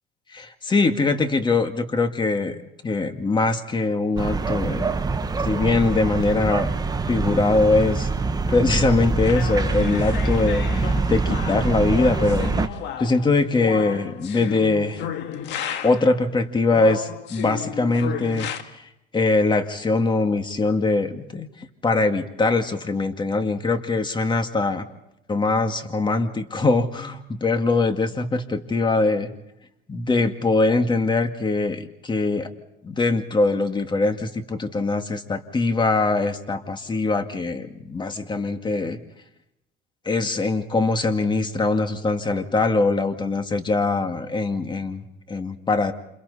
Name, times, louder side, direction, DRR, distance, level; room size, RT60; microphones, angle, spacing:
voice 1, 0.3-5.1 5.4-6.7 7.1-8.1 8.5-12.5 13.0-15.0 15.8-21.5 21.8-24.8 25.3-29.3 29.9-32.5 32.8-39.0 40.1-45.9, left 3 dB, 25° left, 7 dB, 2.2 m, -22 dB
sound 1, 4.2-12.7, right 3 dB, 20° right, 1.1 m, -24 dB
sound 2, 9.2-16.2 16.7-18.6, left 9 dB, 70° left, 1.8 m, -33 dB
29.0 x 28.5 x 4.3 m, 0.86 s
cardioid pair, 100°, 19 cm